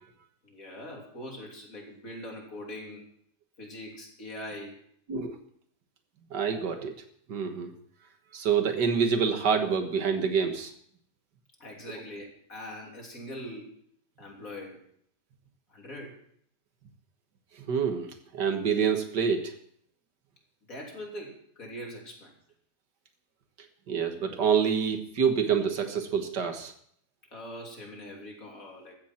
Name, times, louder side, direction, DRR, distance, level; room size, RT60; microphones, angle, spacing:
voice 1, 0.4-3.1 3.6-4.8 11.6-13.7 14.2-14.8 15.7-16.2 20.7-22.3 27.3-29.0, left 1 dB, 55° left, 0 dB, 3.7 m, -42 dB
voice 2, 6.3-6.9 7.3-7.7 8.3-10.7 17.7-19.5 23.9-26.7, right 6 dB, 80° right, 7 dB, 2.1 m, -27 dB
15.5 x 13.5 x 4.4 m, 0.64 s
omnidirectional pair, 1.8 m